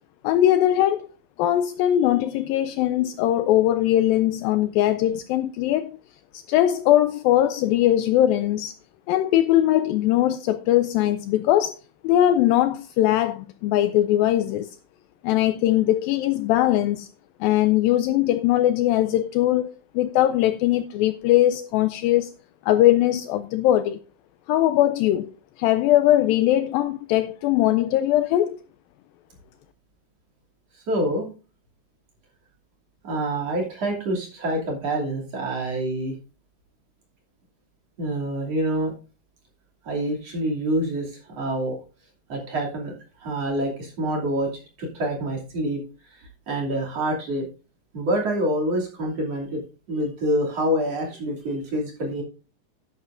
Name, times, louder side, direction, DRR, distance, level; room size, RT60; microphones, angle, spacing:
voice 1, 0.2-1.1 1.4-6.0 6.3-8.7 9.1-11.8 12.0-14.7 15.2-17.1 17.4-22.3 22.6-24.0 24.5-25.3 25.6-28.6, left 13 dB, 80° left, 2.1 m, -20 dB
voice 2, 30.7-31.3 33.0-36.1 38.0-38.9 39.8-41.8 42.3-45.8 46.1-47.5 47.9-49.6 49.9-52.2, right 1 dB, 45° right, 3.5 m, -26 dB
11.0 x 10.5 x 2.5 m
omnidirectional pair, 4.5 m